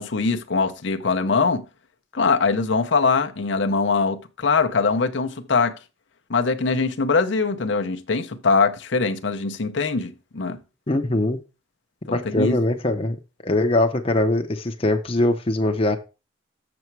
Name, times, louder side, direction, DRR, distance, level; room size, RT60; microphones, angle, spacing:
voice 1, 0.0-1.6 2.1-5.7 6.3-10.6 12.1-12.6, left 4 dB, 65° left, 0.7 m, -22 dB
voice 2, 10.9-11.4 12.1-13.2 13.4-16.0, left 1 dB, 30° left, 0.8 m, -21 dB
6.9 x 6.9 x 4.6 m
head